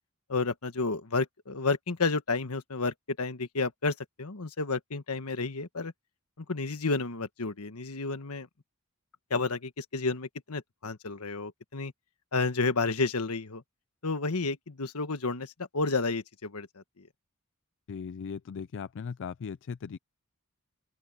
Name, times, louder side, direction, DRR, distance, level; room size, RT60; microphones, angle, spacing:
voice 1, 0.3-5.9 6.4-8.5 9.3-11.9 12.3-13.6 14.0-16.7, left 3 dB, 85° left, 1.4 m, -31 dB
voice 2, 17.9-20.0, left 6 dB, 60° left, 0.4 m, -38 dB
open air
head